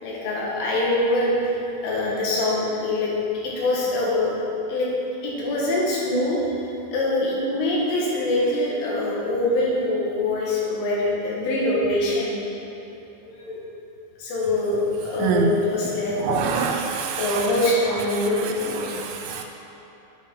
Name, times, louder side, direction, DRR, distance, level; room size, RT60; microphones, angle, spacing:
voice 1, 0.0-3.1 3.4-4.4 4.7-4.9 5.2-12.3 13.3-13.6 14.2-16.4 17.2-19.0, left 1 dB, 90° left, -5 dB, 4.2 m, -24 dB
voice 2, 15.2-15.5 16.2-17.4 18.9-19.4, right 5 dB, 85° right, 2 dB, 3.2 m, -25 dB
9.9 x 8.5 x 3.8 m, 3.0 s
omnidirectional pair, 5.4 m